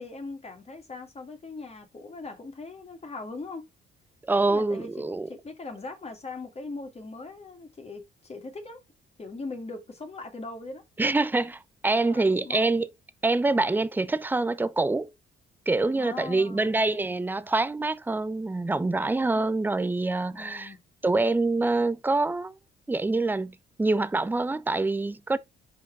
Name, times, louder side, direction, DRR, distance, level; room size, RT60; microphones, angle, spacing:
voice 1, 0.0-3.6 4.4-8.8 9.2-10.8 12.0-12.7 15.9-16.8 20.3-20.8, left 3 dB, 30° left, 2.2 m, -40 dB
voice 2, 4.3-5.3 11.0-12.9 13.2-15.1 15.7-20.7 21.0-22.5 22.9-25.4, right 2 dB, 10° right, 0.6 m, -25 dB
5.7 x 5.0 x 4.6 m
cardioid pair, 90°, 20 cm